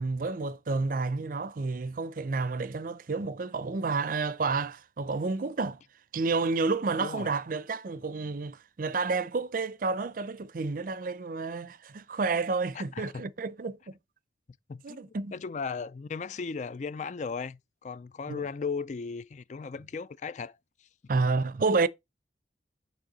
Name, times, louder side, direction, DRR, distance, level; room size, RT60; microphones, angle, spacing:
voice 1, 0.0-5.8 6.1-13.9 14.8-15.3 18.3-18.4 21.1-21.9, right 4 dB, 50° right, 0.5 m, -30 dB
voice 2, 7.0-7.3 12.7-13.2 14.7-20.6, left 5 dB, 40° left, 0.4 m, -36 dB
6.5 x 3.4 x 6.1 m
head